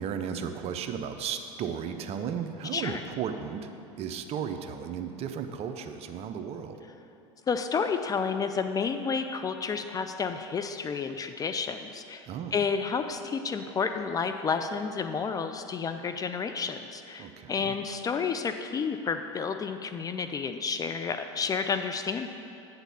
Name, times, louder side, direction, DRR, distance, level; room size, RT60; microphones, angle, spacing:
voice 1, 0.0-3.7 4.0-6.8 12.2-12.5 17.2-17.7, right 7 dB, 40° right, 7 dB, 0.6 m, -35 dB
voice 2, 7.5-12.3 12.5-22.3, left 5 dB, 25° left, 8 dB, 0.4 m, -30 dB
8.2 x 4.0 x 6.8 m, 2.7 s
hypercardioid pair, 95°, 15 cm